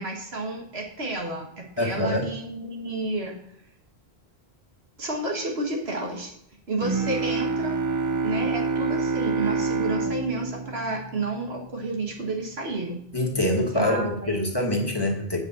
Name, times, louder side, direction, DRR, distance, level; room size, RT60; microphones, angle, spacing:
voice 1, 0.0-3.4 5.0-6.3 6.7-7.8 8.2-13.0 13.7-14.5, right 2 dB, 80° right, 0 dB, 2.1 m, -31 dB
voice 2, 1.8-2.3 13.1-15.4, left 1 dB, 25° left, 0 dB, 1.5 m, -25 dB
Bowed string instrument, 6.8-11.9, right 4 dB, 30° right, 0.3 m, -27 dB
8.1 x 5.0 x 7.0 m, 0.70 s
omnidirectional pair, 1.0 m